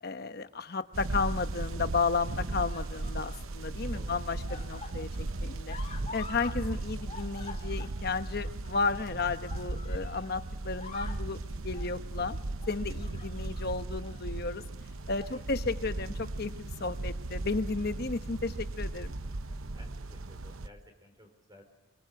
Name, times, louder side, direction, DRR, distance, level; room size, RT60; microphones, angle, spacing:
voice 1, 0.0-5.8 6.1-12.4 12.7-14.6 15.1-19.1, left 4 dB, 50° left, 10 dB, 1.0 m, -33 dB
sound 1, 0.8-1.3 2.2-3.5 3.8-6.6 6.9-10.3 10.6-11.3 11.7-12.0 12.6-13.7 14.0-14.2 14.9-15.4 15.7-15.9 17.0-17.7 18.6-18.7, left 4 dB, 30° left, 2.2 m, -48 dB
sound 2, 0.9-20.7, right 2 dB, 80° right, 0.9 m, -37 dB
voice 2, 11.5-11.9 15.2-15.5 19.3-19.4 19.7-21.6, left 1 dB, 20° right, 5 dB, 4.6 m, -56 dB
24.0 x 23.5 x 7.8 m, 1.0 s
head